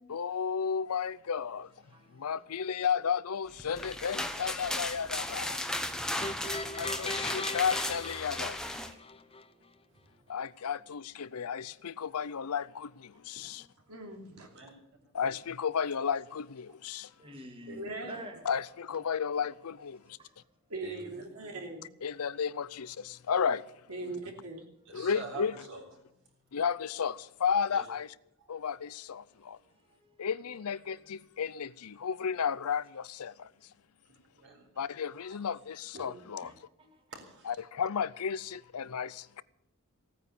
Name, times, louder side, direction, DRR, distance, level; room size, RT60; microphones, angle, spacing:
voice 1, 0.1-1.7 2.1-5.6 6.4-8.6 10.3-13.7 15.1-17.1 18.4-20.2 22.0-23.6 24.9-25.5 26.5-28.1 28.5-29.6 30.2-33.5 34.8-36.5 37.5-39.4, left 7 dB, 80° left, 0.6 m, -33 dB
voice 2, 1.8-2.3 9.0-9.8 10.3-10.4 13.1-13.7 17.2-18.4 20.0-20.3 29.6-30.1 36.4-37.0, equal, 25° right, 2.3 m, -50 dB
sound 1, 3.6-8.9, left 1 dB, 5° left, 1.0 m, -35 dB
sound 2, 6.2-9.4, left 3 dB, 25° left, 0.6 m, -39 dB
voice 3, 13.9-14.5 17.7-18.2 20.7-21.9 23.9-24.6 35.9-36.2, right 2 dB, 80° right, 3.1 m, -41 dB
voice 4, 17.4-18.2 20.8-21.3 24.9-25.9 27.7-27.9 28.4-28.6 34.1-34.7 35.3-35.4 35.9-36.1 36.5-36.6 37.1-37.9, right 3 dB, 55° right, 4.3 m, -48 dB
16.5 x 9.5 x 8.4 m
head